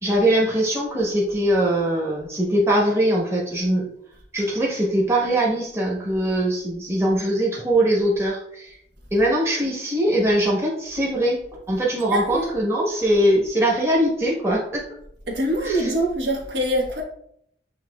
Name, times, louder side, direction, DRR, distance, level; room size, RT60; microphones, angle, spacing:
voice 1, 0.0-3.9 4.3-8.7 9.1-14.9 15.6-15.9, right 1 dB, 15° right, -3 dB, 1.1 m, -21 dB
voice 2, 12.1-12.5 15.3-17.0, right 1 dB, 75° right, -1 dB, 1.3 m, -24 dB
8.3 x 2.8 x 2.3 m, 0.71 s
head